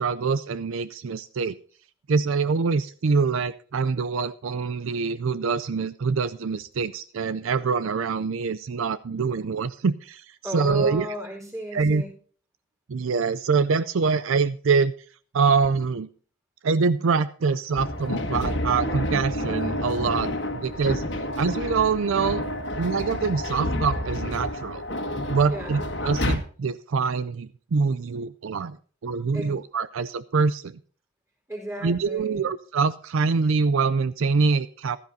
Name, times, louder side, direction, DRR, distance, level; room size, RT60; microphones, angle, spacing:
voice 1, 0.0-1.6 2.1-11.1 11.7-12.0 12.9-14.9 15.3-16.1 16.6-21.0 21.4-22.4 22.8-24.8 25.3-28.8 29.0-30.8 31.8-35.0, right 5 dB, 65° right, 15 dB, 0.4 m, -25 dB
voice 2, 10.4-12.1 25.5-25.9 29.3-29.6 31.5-32.5, equal, 15° right, 1 dB, 4.4 m, -35 dB
sound 1, 17.8-26.4, left 1 dB, 55° left, 1.7 m, -29 dB
15.5 x 13.0 x 2.7 m, 0.43 s
head